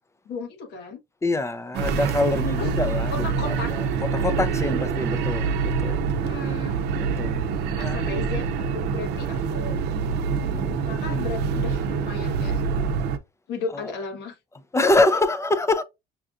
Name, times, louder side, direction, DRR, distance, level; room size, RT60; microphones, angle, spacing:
voice 1, 0.2-1.0 2.5-2.7 3.1-3.7 6.2-6.8 7.8-9.8 10.9-12.6 13.5-14.4, left 4 dB, 75° left, 1.4 m, -35 dB
voice 2, 1.2-3.8 4.1-5.5 5.8-6.0 7.0-7.4 7.8-8.0 10.3-10.8 11.1-11.2 13.7-13.9 14.7-15.8, left 2 dB, 15° left, 0.4 m, -25 dB
sound 1, 1.7-13.2, right 5 dB, 80° right, 0.6 m, -26 dB
5.6 x 2.5 x 2.4 m
cardioid pair, 110°, 17 cm